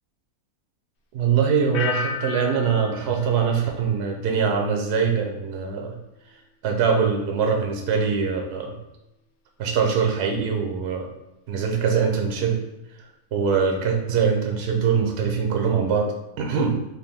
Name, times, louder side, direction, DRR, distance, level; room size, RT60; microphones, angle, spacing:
voice 1, 1.1-6.0 6.6-8.8 9.6-11.1 11.5-12.6 13.3-16.7, right 6 dB, 75° right, 2 dB, 0.6 m, -23 dB
sound 1, 1.7-4.6 4.9-5.4, left 4 dB, 60° left, 0.7 m, -34 dB
3.3 x 2.3 x 3.4 m, 0.94 s
omnidirectional pair, 1.6 m